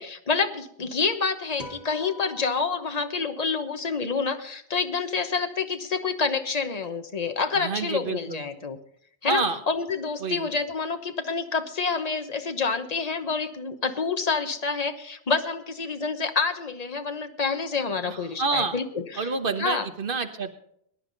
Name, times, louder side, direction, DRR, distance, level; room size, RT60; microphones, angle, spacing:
voice 1, 0.0-8.8 9.2-19.3 19.6-19.9, left 5 dB, 40° left, 7 dB, 1.2 m, -28 dB
sound 1, 1.6-4.1, left 2 dB, 90° left, 2.5 m, -46 dB
voice 2, 7.5-8.5 9.2-9.6 10.2-10.5 18.0-18.7 19.2-20.5, right 4 dB, 55° right, 8 dB, 1.4 m, -28 dB
20.0 x 10.5 x 4.0 m, 0.69 s
omnidirectional pair, 1.1 m